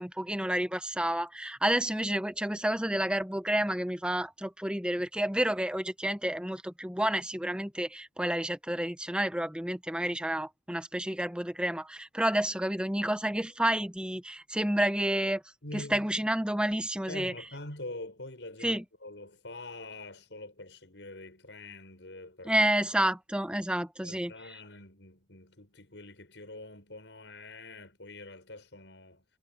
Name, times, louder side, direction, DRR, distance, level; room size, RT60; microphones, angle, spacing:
voice 1, 0.0-15.4 15.7-17.3 18.6-18.8 22.5-24.3, right 1 dB, 5° right, 0.9 m, -30 dB
voice 2, 15.6-16.1 17.1-22.5 24.0-29.2, left 2 dB, 85° left, 5.7 m, -45 dB
head